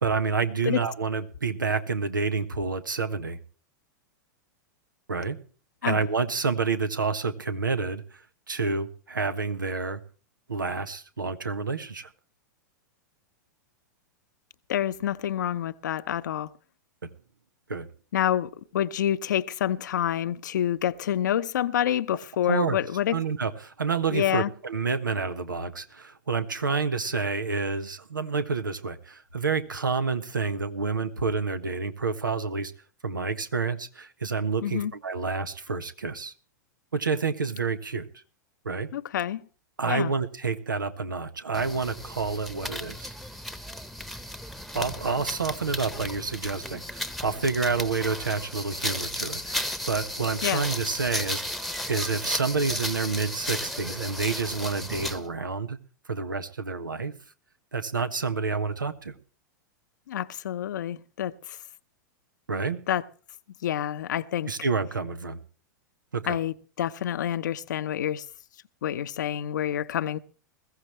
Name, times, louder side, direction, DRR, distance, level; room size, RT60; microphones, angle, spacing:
voice 1, 0.0-3.4 5.1-5.4 5.8-8.2 8.5-10.0 10.5-12.1 17.0-17.1 17.7-17.9 22.5-22.8 23.1-32.7 33.0-36.3 36.9-38.1 38.6-38.9 39.8-43.1 44.7-55.8 56.1-57.1 57.7-59.1 62.5-62.8 64.4-65.4 66.1-66.4, right 4 dB, 90° right, 1.4 m, -29 dB
voice 2, 14.7-16.5 18.1-23.2 24.1-24.5 34.6-34.9 38.9-39.4 39.9-40.1 50.4-50.7 60.1-61.6 62.9-63.0 63.6-64.5 66.3-68.3 68.8-70.2, left 11 dB, 70° left, 0.8 m, -28 dB
sound 1, 41.5-55.3, left 1 dB, ahead, 1.1 m, -34 dB
21.0 x 15.0 x 3.2 m
hypercardioid pair, 100°, 10 cm